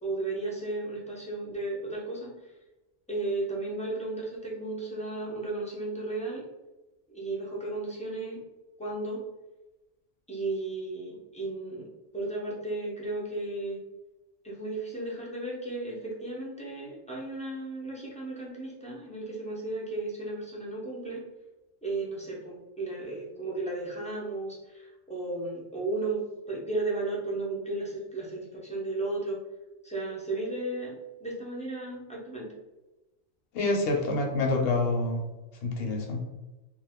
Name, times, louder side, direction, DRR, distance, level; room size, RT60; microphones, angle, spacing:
voice 1, 0.0-2.5 3.1-6.4 7.1-8.4 8.8-9.2 10.3-11.9 12.1-13.8 14.4-21.2 21.8-29.4 29.8-32.5, right 2 dB, 10° left, -5 dB, 0.4 m, -34 dB
voice 2, 33.5-35.2 35.6-36.2, left 2 dB, 60° left, 1 dB, 0.8 m, -27 dB
2.5 x 2.3 x 3.4 m, 1.1 s
omnidirectional pair, 1.2 m